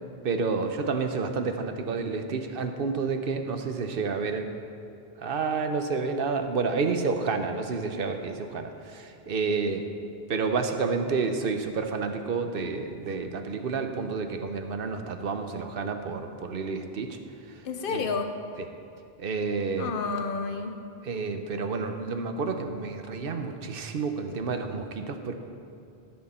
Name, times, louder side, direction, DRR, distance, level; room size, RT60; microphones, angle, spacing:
voice 1, 0.2-4.5 5.2-9.9 10.3-17.2 17.5-17.6 17.9-18.0 19.2-19.9 21.0-25.3, right 4 dB, 60° right, 6 dB, 1.0 m, -30 dB
voice 2, 17.6-18.4 19.8-20.8, left 5 dB, 60° left, 6 dB, 0.9 m, -30 dB
15.0 x 7.7 x 4.3 m, 2.7 s
omnidirectional pair, 1.1 m